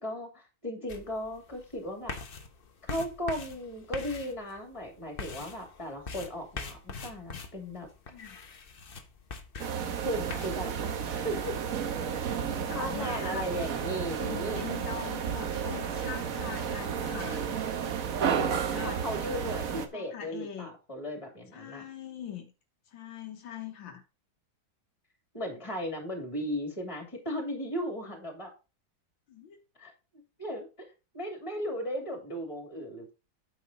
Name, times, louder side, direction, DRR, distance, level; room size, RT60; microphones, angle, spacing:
voice 1, 0.0-2.2 2.8-7.9 10.0-11.5 12.2-12.3 12.7-14.6 18.8-21.8 25.3-28.5 29.8-29.9 30.4-30.7 31.1-33.1, equal, 15° left, 2.5 m, -36 dB
sound 1, 0.9-10.5, left 4 dB, 40° left, 0.8 m, -43 dB
sound 2, 9.6-19.9, right 7 dB, 50° right, 1.2 m, -32 dB
voice 2, 12.3-13.5 14.2-17.9 18.1-19.0 19.9-20.7 21.5-22.5 22.9-24.0 29.3-29.6, left 8 dB, 75° left, 1.8 m, -42 dB
8.8 x 6.3 x 4.0 m
omnidirectional pair, 2.1 m